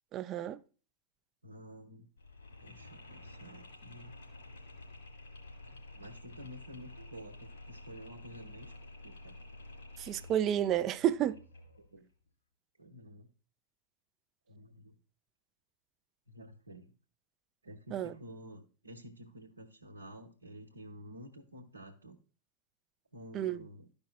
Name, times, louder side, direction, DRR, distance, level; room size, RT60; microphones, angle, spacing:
voice 1, 0.1-0.6 10.0-11.4 17.9-18.1 23.3-23.6, right 11 dB, 30° right, 0.4 m, -31 dB
voice 2, 1.4-2.1 2.6-4.2 5.7-9.4 11.9-12.1 12.8-13.3 14.5-15.0 16.3-16.9 17.6-22.2 23.1-23.9, equal, 80° right, 0.9 m, -51 dB
Mechanisms, 2.2-11.9, left 2 dB, 70° left, 3.5 m, -51 dB
13.5 x 5.2 x 2.2 m
figure-of-eight pair, 90°, 0 cm